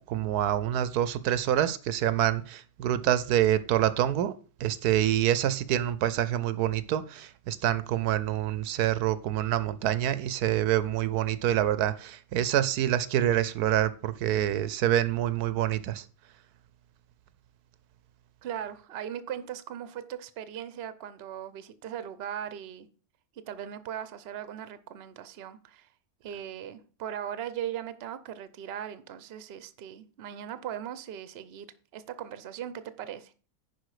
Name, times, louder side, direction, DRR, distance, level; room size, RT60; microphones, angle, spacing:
voice 1, 0.1-4.3 4.6-16.0, right 12 dB, 85° right, 1.2 m, -26 dB
voice 2, 18.4-22.9 23.5-25.9 26.2-31.7 31.9-33.3, right 9 dB, 50° right, 0.8 m, -39 dB
10.5 x 4.9 x 4.9 m
omnidirectional pair, 1.6 m